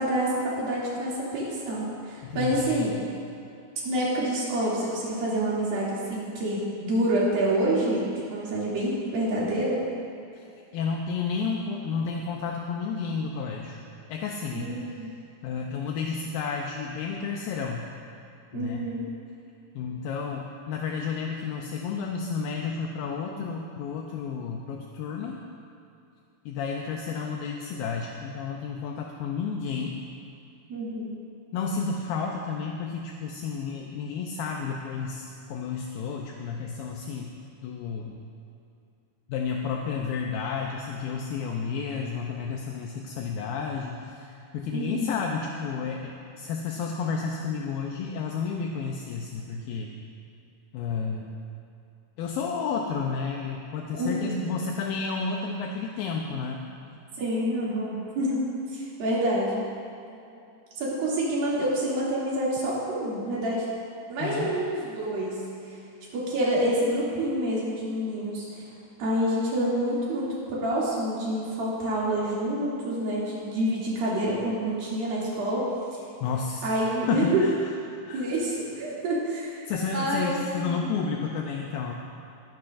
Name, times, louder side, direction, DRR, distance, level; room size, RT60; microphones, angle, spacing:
voice 1, 0.0-2.9 3.8-9.8 14.5-15.1 18.5-19.1 30.7-31.2 44.7-45.1 53.9-54.4 57.2-58.4 58.7-59.6 60.8-63.7 64.1-65.4 66.1-68.6 69.0-75.6 76.6-77.4 78.1-79.6 79.9-80.8, right 1 dB, 70° right, -7 dB, 4.4 m, -27 dB
voice 2, 2.2-3.0 10.3-10.4 10.7-13.8 14.1-14.8 15.4-17.9 18.5-18.9 19.8-25.4 26.5-30.0 31.5-37.3 37.6-38.2 39.3-49.9 50.7-51.3 52.2-56.6 64.2-64.5 76.2-77.6 77.9-78.3 79.7-81.9, left 5 dB, 80° left, 1 dB, 2.4 m, -31 dB
20.5 x 10.5 x 2.6 m, 2.7 s
omnidirectional pair, 4.3 m